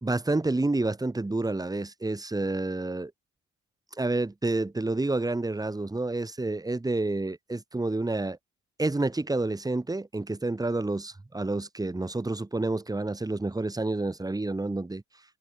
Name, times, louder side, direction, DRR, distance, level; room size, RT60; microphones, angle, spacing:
voice 1, 0.0-3.1 4.0-8.4 8.8-15.0, right 2 dB, 10° right, 1.6 m, -29 dB
open air
cardioid pair, 90°, 30 cm